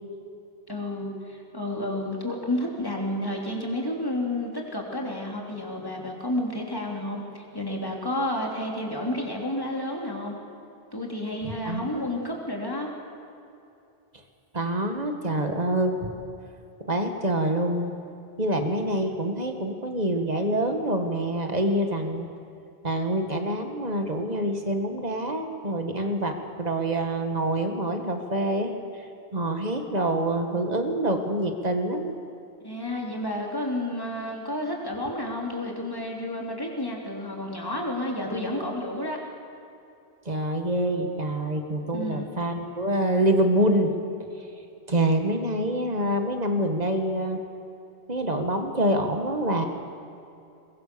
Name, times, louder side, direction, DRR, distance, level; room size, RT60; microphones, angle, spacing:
voice 1, 0.7-10.4 10.9-12.9 32.6-39.2 41.9-42.3, left 1 dB, 20° left, -1 dB, 3.3 m, -31 dB
voice 2, 11.4-12.1 14.5-16.1 16.9-17.9 18.4-22.3 22.8-28.8 29.3-32.1 40.3-43.9 44.9-47.4 48.1-49.6, right 1 dB, 40° right, 5 dB, 2.0 m, -26 dB
22.5 x 21.5 x 7.0 m, 2.7 s
omnidirectional pair, 1.0 m